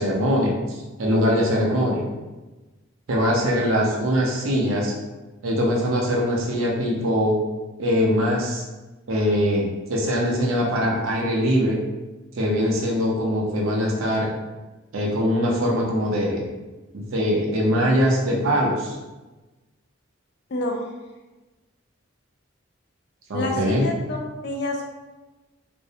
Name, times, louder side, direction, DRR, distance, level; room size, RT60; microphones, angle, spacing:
voice 1, 0.0-2.1 3.1-4.9 5.4-7.4 7.8-8.6 9.1-11.8 12.3-14.3 14.9-16.4 16.9-19.0 23.3-23.9, equal, 80° right, -2 dB, 0.6 m, -22 dB
voice 2, 20.5-20.8 23.3-24.2 24.4-24.9, left 1 dB, 50° left, 1 dB, 0.4 m, -27 dB
2.5 x 2.0 x 2.7 m, 1.2 s
head